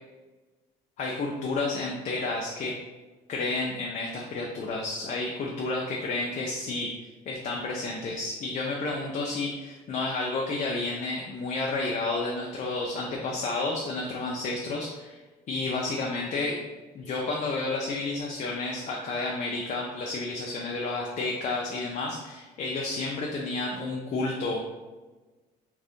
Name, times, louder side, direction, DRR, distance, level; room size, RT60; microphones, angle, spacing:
voice 1, 1.0-2.8 3.3-6.9 7.3-15.2 15.5-16.7 16.9-24.6, left 3 dB, 45° left, -1 dB, 0.5 m, -31 dB
2.6 x 2.4 x 3.5 m, 1.2 s
cardioid pair, 110°, 17 cm